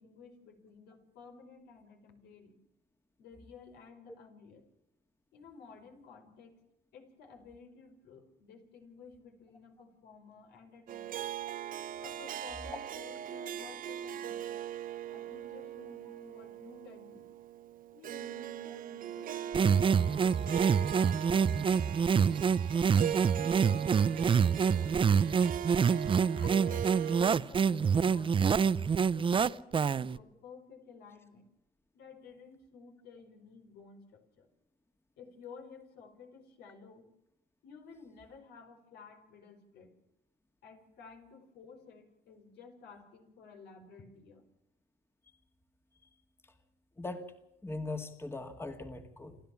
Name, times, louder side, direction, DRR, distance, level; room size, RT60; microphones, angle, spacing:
voice 1, 0.0-2.6 3.2-4.6 5.3-6.6 6.9-11.3 12.0-14.5 15.1-17.3 17.9-22.4 23.3-25.5 26.4-31.5 31.9-34.5 35.2-37.1 37.6-39.9 40.6-44.4, left 5 dB, 75° left, 5 dB, 5.3 m, -54 dB
Harp, 10.9-27.3, right 10 dB, 55° right, 0.9 m, -40 dB
sound 1, 19.5-30.2, right 6 dB, 30° right, 0.7 m, -27 dB
voice 2, 47.6-49.4, left 2 dB, 15° left, 7 dB, 2.0 m, -40 dB
28.0 x 13.0 x 7.2 m, 0.87 s
cardioid pair, 110°, 17 cm